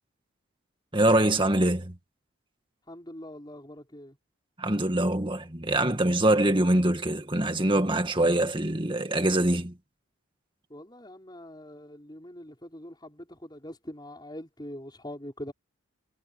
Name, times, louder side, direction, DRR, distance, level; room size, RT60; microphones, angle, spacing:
voice 1, 0.9-1.9 4.6-9.7, right 1 dB, 25° right, 2.0 m, -24 dB
voice 2, 2.9-4.2 10.7-15.5, left 1 dB, 20° left, 5.7 m, -43 dB
head